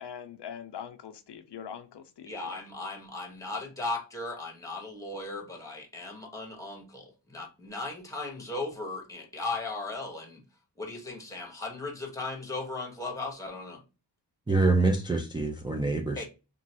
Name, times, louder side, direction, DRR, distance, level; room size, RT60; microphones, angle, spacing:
voice 1, 0.0-2.5, left 8 dB, 75° left, 0.5 m, -42 dB
voice 2, 2.2-10.4 10.8-13.8 16.2-16.3, left 3 dB, 10° left, 1.1 m, -37 dB
voice 3, 14.5-16.2, right 3 dB, 10° right, 0.4 m, -25 dB
3.0 x 2.4 x 2.7 m
wide cardioid pair, 70°, 42 cm